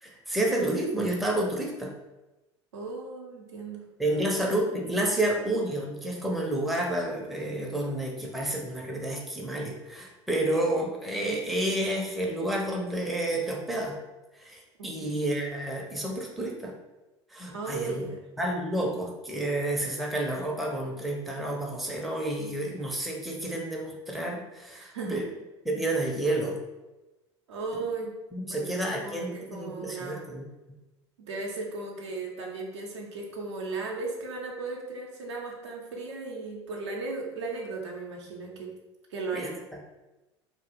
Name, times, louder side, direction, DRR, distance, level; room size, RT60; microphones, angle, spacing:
voice 1, 0.0-1.9 4.0-14.0 14.4-16.7 17.3-18.1 18.4-25.2 25.6-26.6 28.3-30.4 39.3-39.5, right 1 dB, ahead, -1 dB, 0.4 m, -30 dB
voice 2, 2.7-3.8 14.8-15.1 17.5-18.2 24.8-25.3 27.5-28.1 28.5-28.7 29.0-30.2 31.3-38.7 39.1-39.6, right 3 dB, 75° right, -1 dB, 0.5 m, -36 dB
2.1 x 2.0 x 2.9 m, 1.1 s
figure-of-eight pair, 70°, 15 cm